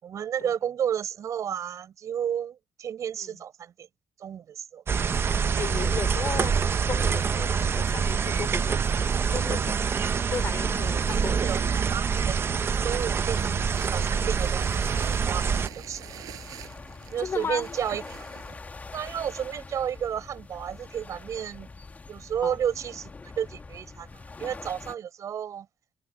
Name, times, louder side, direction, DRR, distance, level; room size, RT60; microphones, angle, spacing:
voice 1, 0.0-3.9 4.2-4.8 11.4-12.4 12.8-16.0 17.1-18.0 18.8-21.7 22.1-25.7, right 9 dB, 65° right, 6.7 m, -32 dB
sound 1, 4.9-15.7, right 6 dB, 40° right, 0.8 m, -26 dB
voice 2, 5.6-6.5 6.8-9.7 10.3-11.9 17.2-17.7 22.4-22.6, left 6 dB, 45° left, 5.4 m, -35 dB
sound 2, 9.9-18.6, right 12 dB, 85° right, 5.3 m, -46 dB
sound 3, 12.4-25.0, left 3 dB, 25° left, 2.3 m, -44 dB
cardioid pair, 95°, 6 cm